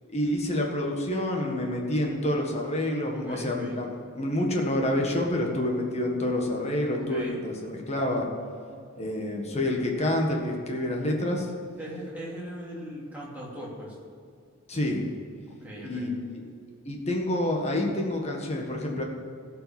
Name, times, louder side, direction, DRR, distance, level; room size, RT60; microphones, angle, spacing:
voice 1, 0.1-3.9 4.1-8.3 9.0-11.5 14.7-15.1 15.8-16.4 16.9-19.0, left 1 dB, 30° left, 1 dB, 1.7 m, -28 dB
voice 2, 3.1-3.8 6.9-7.4 11.8-14.0 15.6-16.1, equal, 10° right, -6 dB, 3.0 m, -39 dB
16.0 x 5.7 x 7.1 m, 2.3 s
head